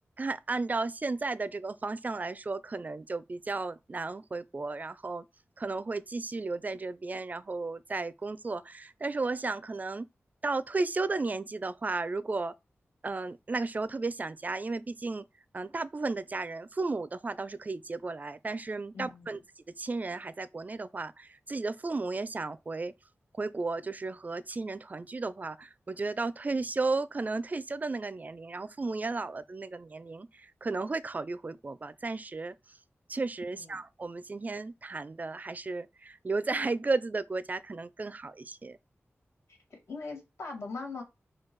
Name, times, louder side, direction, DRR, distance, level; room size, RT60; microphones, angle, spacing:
voice 1, 0.2-5.3 5.6-10.1 10.4-12.5 13.0-15.2 15.5-19.4 19.8-22.9 23.4-32.6 33.1-38.8, right 3 dB, 35° right, 0.4 m, -34 dB
voice 2, 18.9-19.4 33.5-33.8 39.7-41.0, left 3 dB, 75° left, 2.2 m, -40 dB
4.5 x 2.3 x 4.5 m
wide cardioid pair, 80°, 5 cm